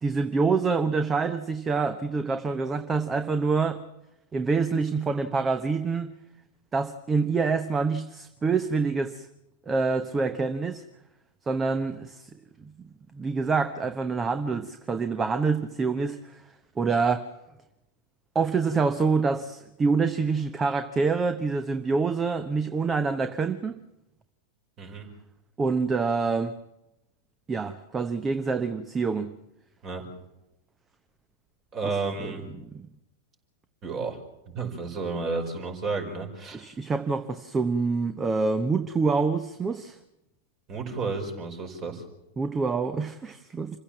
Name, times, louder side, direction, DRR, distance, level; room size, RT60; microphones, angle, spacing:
voice 1, 0.0-3.8 4.3-6.1 6.7-9.3 9.7-10.8 11.5-12.3 13.1-16.4 16.8-17.3 18.3-23.8 25.6-26.5 27.5-29.3 31.8-32.9 36.5-40.0 42.4-43.8, right 4 dB, 15° right, 0.9 m, -26 dB
voice 2, 31.7-32.5 33.8-34.2 34.5-36.6 40.7-42.0, right 4 dB, 35° right, 5.1 m, -32 dB
27.5 x 15.5 x 7.5 m
figure-of-eight pair, 90°, 0 cm